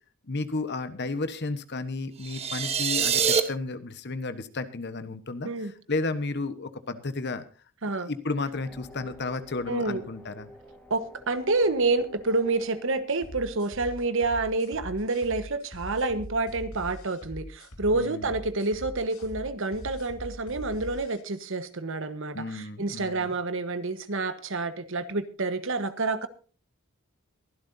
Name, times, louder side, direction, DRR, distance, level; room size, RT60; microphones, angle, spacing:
voice 1, 0.2-7.4 7.8-10.5 17.9-18.3 22.3-23.3, left 3 dB, 50° left, 11 dB, 1.2 m, -33 dB
sound 1, 2.2-3.4, right 6 dB, 30° right, 1.0 m, -25 dB
sound 2, 8.5-13.8, equal, 5° left, 5.5 m, -50 dB
voice 2, 9.7-10.0 10.9-26.3, right 3 dB, 60° right, 11 dB, 1.2 m, -28 dB
sound 3, 13.2-21.2, equal, 75° left, 2.2 m, -42 dB
23.0 x 11.5 x 2.7 m, 0.36 s
head